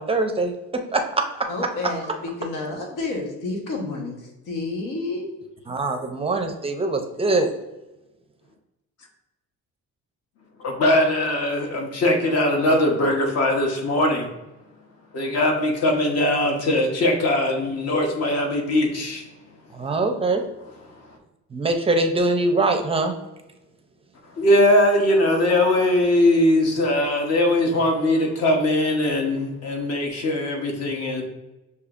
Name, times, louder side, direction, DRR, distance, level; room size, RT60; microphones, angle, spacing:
voice 1, 0.0-1.5 5.7-7.5 19.7-20.4 21.5-23.2, right 2 dB, 20° right, 5 dB, 0.5 m, -23 dB
voice 2, 1.5-5.3, left 3 dB, 90° left, 1 dB, 1.2 m, -30 dB
voice 3, 10.6-14.3 15.1-19.2 24.4-31.2, left 1 dB, 55° left, 2 dB, 1.0 m, -20 dB
6.5 x 2.8 x 2.5 m, 1.0 s
cardioid pair, 130°, 30 cm